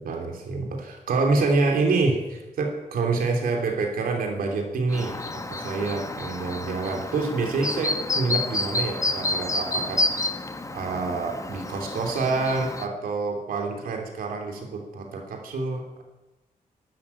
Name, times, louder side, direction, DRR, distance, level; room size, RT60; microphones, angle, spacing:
voice 1, 0.0-10.1 10.7-16.0, right 3 dB, 90° right, 3 dB, 3.2 m, -27 dB
Chirp tweet, 4.9-12.9, left 2 dB, 20° left, 1.3 m, -29 dB
13.0 x 11.5 x 8.5 m, 1.1 s
cardioid pair, 70°, 15 cm